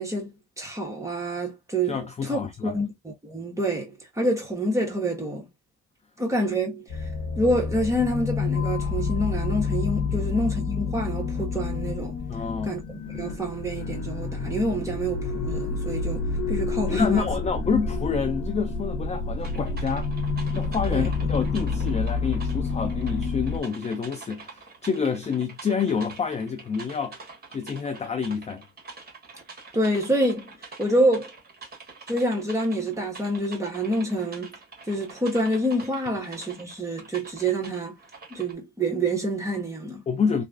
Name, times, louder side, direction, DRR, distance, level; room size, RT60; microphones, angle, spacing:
voice 1, 0.0-5.5 6.2-7.1 7.4-12.2 12.6-17.3 20.9-21.1 29.7-30.5 30.8-31.3 32.1-34.6 34.9-38.0 38.3-40.0, right 1 dB, 10° right, 1.3 m, -27 dB
voice 2, 1.9-2.8 10.2-10.3 12.3-12.7 16.9-20.1 20.5-27.2 27.5-28.6 40.1-40.4, left 6 dB, 25° left, 0.4 m, -28 dB
sound 1, 6.9-23.6, left 4 dB, 70° left, 1.0 m, -29 dB
sound 2, 19.4-38.5, right 4 dB, 30° right, 1.5 m, -45 dB
3.0 x 2.5 x 2.3 m
cardioid pair, 90°, 30 cm